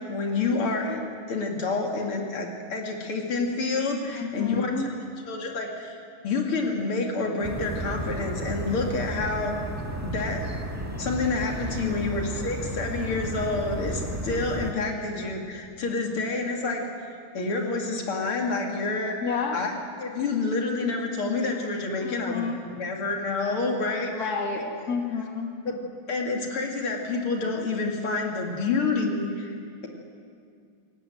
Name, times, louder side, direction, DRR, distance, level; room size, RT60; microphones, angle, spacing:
voice 1, 0.1-1.0 1.3-4.7 5.3-6.0 6.2-9.6 10.0-10.4 11.0-16.8 17.3-19.7 20.0-22.5 22.7-24.6 25.7-25.8 26.1-29.6, left 3 dB, 80° left, 1 dB, 3.3 m, -28 dB
voice 2, 4.1-4.9 11.7-12.3 14.6-14.9 15.2-15.3 19.2-19.6 22.0-22.6 24.1-24.6 24.9-25.5, left 5 dB, 45° left, 2 dB, 2.8 m, -31 dB
sound 1, 7.4-14.7, right 1 dB, 10° right, 1.4 m, -33 dB
28.5 x 17.5 x 7.9 m, 2.3 s
omnidirectional pair, 2.3 m